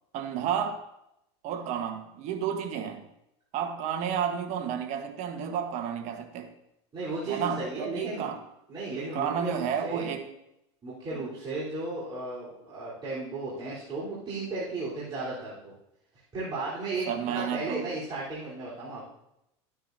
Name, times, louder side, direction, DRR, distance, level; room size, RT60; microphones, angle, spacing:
voice 1, 0.1-0.8 1.4-3.0 3.5-6.5 7.3-8.4 9.1-10.3 17.1-17.9, right 8 dB, 55° right, 6 dB, 1.3 m, -31 dB
voice 2, 6.9-8.2 8.7-10.1 10.8-15.7 16.3-19.0, right 2 dB, 30° right, -10 dB, 3.9 m, -35 dB
13.0 x 9.4 x 2.8 m, 0.84 s
supercardioid pair, 105°, 15 cm